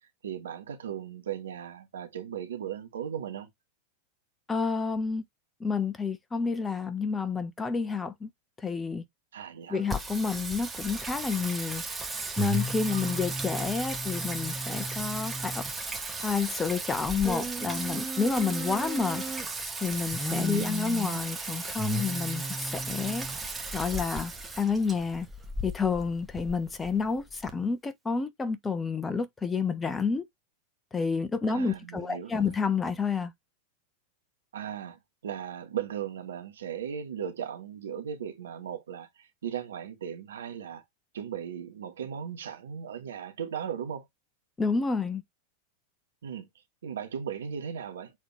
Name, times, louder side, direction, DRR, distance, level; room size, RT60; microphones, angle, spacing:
voice 1, 0.2-3.5 9.3-9.9 12.9-13.3 20.5-20.8 31.5-32.5 34.5-40.8 41.1-44.1 46.2-46.5 46.8-48.1, right 8 dB, 65° right, 1.6 m, -37 dB
voice 2, 4.5-5.2 5.6-8.3 8.6-9.0 9.7-11.8 12.4-15.6 16.2-19.2 19.8-23.3 23.7-24.3 24.6-25.3 25.6-30.2 30.9-33.3 44.6-45.2, left 5 dB, 15° left, 1.2 m, -29 dB
Singing, 9.9-27.5, right 2 dB, 10° right, 1.6 m, -34 dB
7.5 x 4.2 x 3.2 m
figure-of-eight pair, 90°, 0 cm